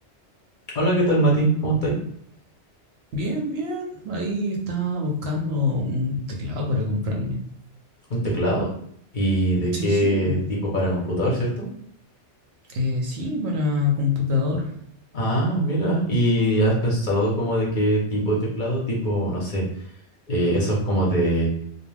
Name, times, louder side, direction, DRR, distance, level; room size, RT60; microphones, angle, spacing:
voice 1, 0.7-1.9 8.1-8.7 9.1-10.4 10.7-11.7 15.1-19.6 20.3-21.5, right 1 dB, 50° left, -3 dB, 0.8 m, -22 dB
voice 2, 3.1-7.4 9.7-10.5 12.7-14.8, left 2 dB, 65° right, 0 dB, 0.9 m, -26 dB
2.3 x 2.2 x 3.2 m, 0.67 s
omnidirectional pair, 1.2 m